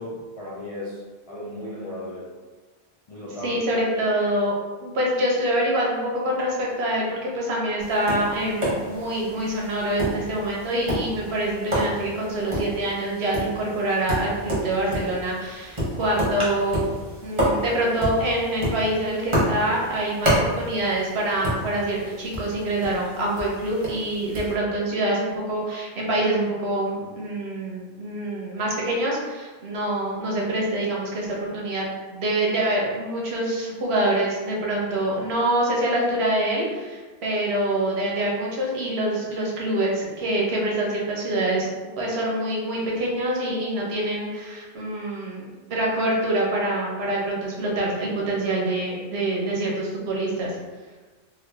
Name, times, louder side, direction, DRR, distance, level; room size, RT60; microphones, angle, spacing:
voice 1, 0.0-2.3 3.1-3.6, left 1 dB, 45° left, -7 dB, 0.5 m, -35 dB
voice 2, 3.4-4.6 4.8-16.9 17.2-31.9 32.1-41.7 42.0-50.6, right 1 dB, 85° right, -3 dB, 1.0 m, -25 dB
Tap, 7.8-24.5, equal, 30° right, 0.9 m, -30 dB
3.1 x 2.3 x 3.3 m, 1.3 s
omnidirectional pair, 1.0 m